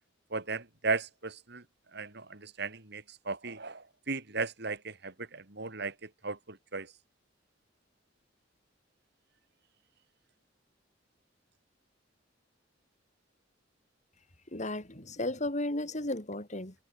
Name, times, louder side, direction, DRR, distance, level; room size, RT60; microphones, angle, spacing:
voice 1, 0.3-1.6 1.9-6.9, right 4 dB, 60° right, 3.8 m, -36 dB
voice 2, 14.5-16.7, left 1 dB, 40° left, 5.4 m, -34 dB
head